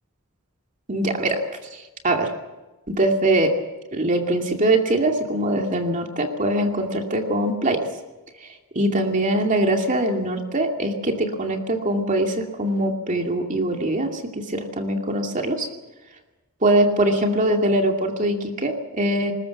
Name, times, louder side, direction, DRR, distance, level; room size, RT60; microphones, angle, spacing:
voice 1, 0.9-1.4 1.7-2.3 2.9-3.5 3.9-7.9 8.7-15.7 16.6-19.3, right 1 dB, 35° right, 3 dB, 2.5 m, -22 dB
20.5 x 20.0 x 7.3 m, 1.1 s
head